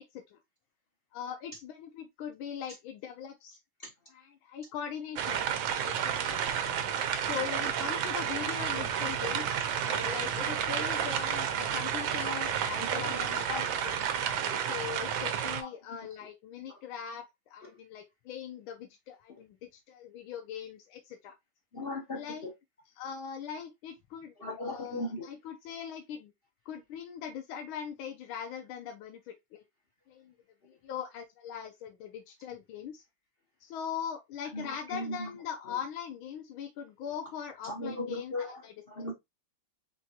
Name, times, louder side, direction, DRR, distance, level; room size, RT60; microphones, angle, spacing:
voice 1, 1.1-3.6 4.1-6.6 7.2-14.0 14.6-21.3 22.1-22.5 23.0-24.3 24.6-26.3 26.7-29.6 30.1-30.3 30.6-33.0 33.6-38.3 38.6-38.7, left 8 dB, 75° left, 1.5 m, -41 dB
sound 1, 5.2-15.6, right 8 dB, 75° right, 1.4 m, -31 dB
voice 2, 12.8-13.6 14.4-14.7 15.6-16.0 16.7-16.8 17.7-17.8 21.7-22.5 24.4-25.3 34.5-35.3 35.7-35.8 37.6-39.1, left 1 dB, 55° left, 0.6 m, -38 dB
4.5 x 3.4 x 2.8 m
omnidirectional pair, 2.3 m